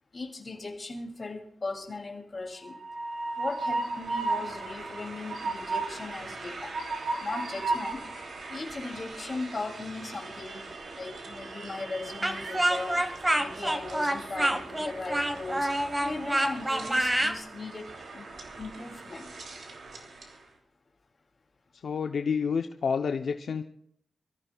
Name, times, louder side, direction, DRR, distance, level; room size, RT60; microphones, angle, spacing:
voice 1, 0.1-2.8 3.4-6.8 7.2-8.1 8.5-13.1 13.4-15.7 16.0-18.3 18.6-19.3, left 3 dB, 35° left, 1 dB, 2.8 m, -38 dB
Train, 2.6-20.4, right 3 dB, 70° right, 3.0 m, -37 dB
Speech, 12.2-17.4, right 1 dB, 15° right, 1.3 m, -27 dB
voice 2, 21.7-23.6, left 6 dB, 70° left, 6 dB, 0.7 m, -29 dB
27.0 x 14.5 x 2.4 m, 0.67 s
wide cardioid pair, 125°, 0 cm